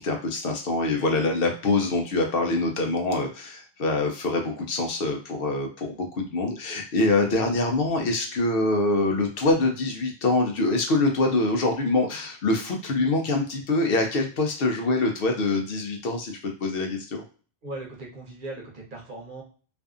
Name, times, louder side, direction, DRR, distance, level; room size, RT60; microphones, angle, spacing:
voice 1, 0.0-17.2, left 2 dB, 65° left, 2 dB, 0.7 m, -25 dB
voice 2, 17.6-19.4, right 2 dB, 50° right, -2 dB, 0.9 m, -38 dB
2.5 x 2.4 x 2.3 m, 0.40 s
omnidirectional pair, 1.1 m